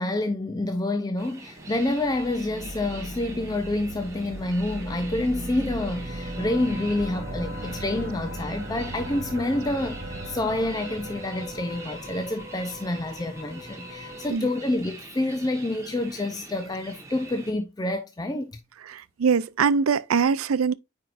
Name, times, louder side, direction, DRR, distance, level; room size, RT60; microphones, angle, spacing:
voice 1, 0.0-18.6, left 2 dB, 20° left, 0.4 m, -28 dB
sound 1, 1.2-17.5, right 2 dB, 15° right, 1.3 m, -44 dB
sound 2, 1.6-12.1, right 1 dB, 50° right, 1.8 m, -38 dB
sound 3, 5.8-14.3, left 2 dB, 80° left, 2.1 m, -42 dB
voice 2, 18.9-20.7, right 6 dB, 90° right, 0.5 m, -23 dB
9.1 x 4.5 x 2.5 m
head